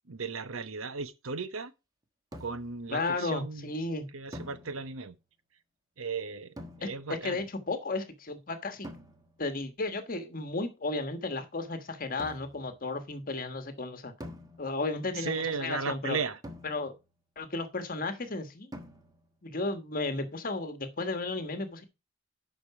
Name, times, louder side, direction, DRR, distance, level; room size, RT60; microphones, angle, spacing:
voice 1, 0.1-1.7 2.4-3.7 4.1-5.1 6.0-6.5 6.8-7.4 15.1-16.4, right 5 dB, 90° right, 0.9 m, -35 dB
sound 1, 2.3-2.9 4.3-5.2 6.6-7.3 8.8-9.6 12.2-12.7 14.2-15.1 16.4-17.2 18.7-19.4, equal, 20° right, 1.3 m, -47 dB
voice 2, 2.9-4.1 6.8-8.9 9.4-14.1 14.6-16.2 16.6-16.9 17.4-18.7 19.4-21.8, left 3 dB, 45° left, 1.4 m, -34 dB
11.5 x 5.1 x 4.8 m
head